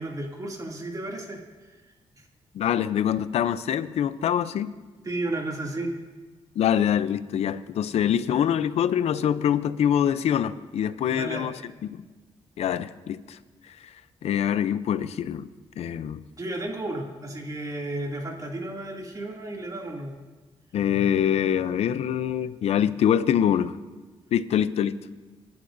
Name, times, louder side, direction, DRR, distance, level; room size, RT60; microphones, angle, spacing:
voice 1, 0.0-1.4 1.7-1.8 2.2-2.3 5.0-5.9 11.1-11.5 16.4-20.1, right 2 dB, 35° right, 0 dB, 2.6 m, -33 dB
voice 2, 2.5-4.7 6.6-11.5 11.8-11.9 12.6-13.4 14.2-15.5 15.8-16.2 20.7-23.7 24.3-25.0, left 9 dB, 80° left, 14 dB, 0.6 m, -24 dB
27.0 x 11.5 x 2.6 m, 1.3 s
cardioid pair, 85°, 11 cm